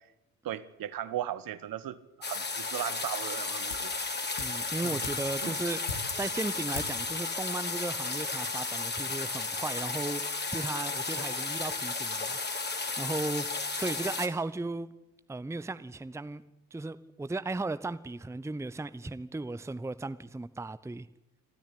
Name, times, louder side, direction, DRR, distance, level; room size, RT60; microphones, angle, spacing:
voice 1, 0.4-3.9 4.7-5.0 5.4-5.5, right 11 dB, 45° right, 1.3 m, -37 dB
sound 1, 2.2-14.3, left 3 dB, 20° left, 2.9 m, -34 dB
sound 2, 3.7-4.0 4.3-6.3 6.7-7.1 7.4-7.5, left 5 dB, 85° left, 2.6 m, -41 dB
voice 2, 4.4-5.8 6.1-10.2 10.5-13.5 13.7-14.9 15.3-16.4 16.7-21.1, right 2 dB, 5° right, 0.9 m, -36 dB
25.5 x 13.5 x 8.6 m
figure-of-eight pair, 50°, 46 cm